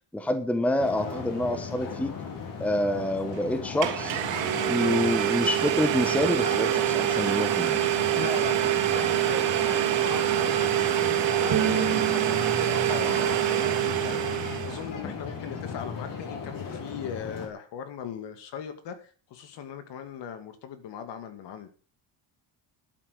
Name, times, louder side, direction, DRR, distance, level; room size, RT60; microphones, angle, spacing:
voice 1, 0.1-2.1 2.6-4.2 4.7-7.8 15.0-15.1, left 1 dB, 5° left, 1.1 m, -27 dB
sound 1, 0.8-17.5, left 5 dB, 45° left, 3.4 m, -37 dB
Domestic sounds home sounds, 3.3-3.4 3.8-14.9, right 12 dB, 70° right, 2.7 m, -25 dB
voice 2, 8.0-21.7, left 7 dB, 65° left, 2.5 m, -39 dB
Bowed string instrument, 11.5-14.7, right 11 dB, 40° right, 0.7 m, -33 dB
11.5 x 9.0 x 6.4 m
cardioid pair, 165°, 45 cm